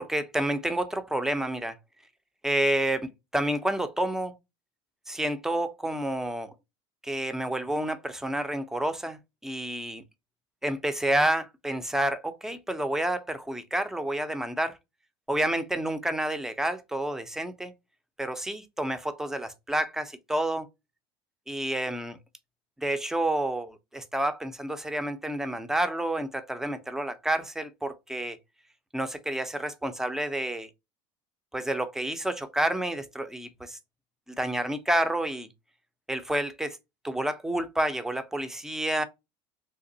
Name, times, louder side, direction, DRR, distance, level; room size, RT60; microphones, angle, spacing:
voice 1, 0.0-1.8 2.4-4.3 5.1-6.5 7.0-10.0 10.6-14.8 15.3-17.7 18.2-20.7 21.5-22.2 22.8-28.4 28.9-30.7 31.5-33.8 34.3-35.5 36.1-36.8 37.0-39.0, right 1 dB, 5° right, 0.5 m, -29 dB
3.2 x 2.9 x 2.6 m
supercardioid pair, 125°, 12 cm